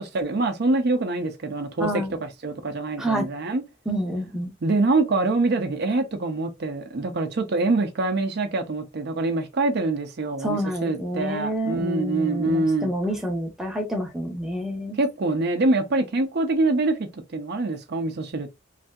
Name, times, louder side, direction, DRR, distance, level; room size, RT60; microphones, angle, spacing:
voice 1, 0.0-2.0 2.4-3.6 4.6-12.9 14.9-18.6, right 2 dB, 55° right, 0.5 m, -25 dB
voice 2, 1.8-2.1 3.0-3.3 3.9-4.5 10.4-15.0, equal, ahead, 0.6 m, -28 dB
3.2 x 2.6 x 2.2 m
head